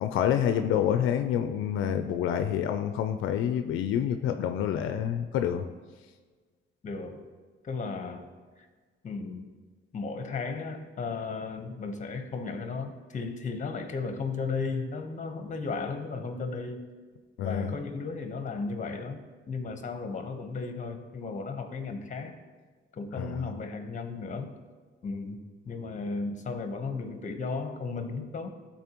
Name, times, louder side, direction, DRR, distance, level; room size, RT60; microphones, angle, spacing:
voice 1, 0.0-5.6 17.4-17.7 23.1-23.5, left 9 dB, 85° left, 8 dB, 0.5 m, -28 dB
voice 2, 6.8-7.3 7.6-8.3 8.6-8.7 9.0-9.5 9.9-16.8 17.4-22.4 22.9-24.6 25.0-28.5, left 4 dB, 40° left, 6 dB, 1.0 m, -35 dB
12.0 x 4.3 x 3.0 m, 1.4 s
cardioid pair, 90°, 20 cm